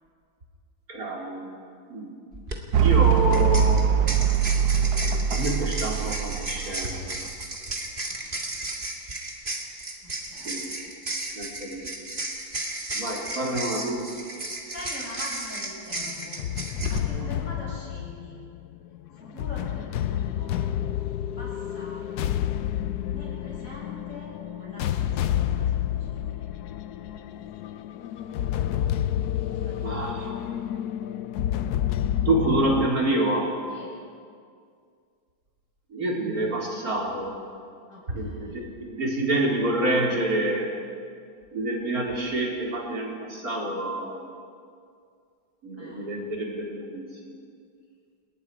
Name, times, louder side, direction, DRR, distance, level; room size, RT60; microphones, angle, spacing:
voice 1, 0.9-1.6 1.9-2.1 2.8-3.8 5.3-7.2 10.3-10.7 11.3-11.9 12.9-14.0 17.1-17.3 29.8-30.4 32.2-33.5 35.9-37.3 38.1-40.7 41.5-44.2 45.6-47.4, right 1 dB, 40° right, -3 dB, 4.5 m, -27 dB
sound 1, 2.3-2.6 3.3-17.0, right 2 dB, 25° right, 2.1 m, -34 dB
sound 2, 2.7-7.3, right 7 dB, 65° right, 1.0 m, -22 dB
voice 2, 8.1-8.5 10.0-10.6 14.4-16.4 16.9-18.4 19.1-20.6 21.4-22.3 23.1-24.3 24.6-26.4 29.4-30.3 33.7-33.9 37.9-38.6 45.8-46.2, left 1 dB, 35° left, -6 dB, 7.7 m, -44 dB
sound 3, 15.9-32.9, left 11 dB, 90° left, 0.8 m, -29 dB
29.5 x 19.5 x 4.9 m, 2.2 s
omnidirectional pair, 2.4 m